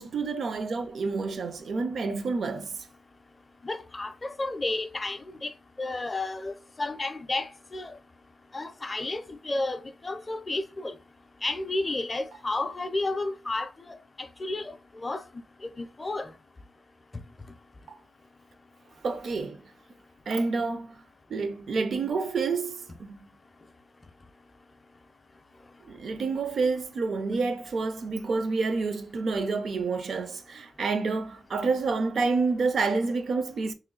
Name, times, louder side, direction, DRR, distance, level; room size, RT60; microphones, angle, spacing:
voice 1, 0.0-2.8 19.0-19.7 20.3-21.0 21.3-23.3 25.8-33.7, right 4 dB, 55° right, 0.5 m, -28 dB
voice 2, 3.6-5.5 5.8-7.9 8.5-10.9 11.4-14.0 14.4-14.7 15.0-15.2 15.6-16.3, left 2 dB, 20° left, 0.5 m, -32 dB
3.1 x 3.0 x 3.7 m
wide cardioid pair, 170°, 0 cm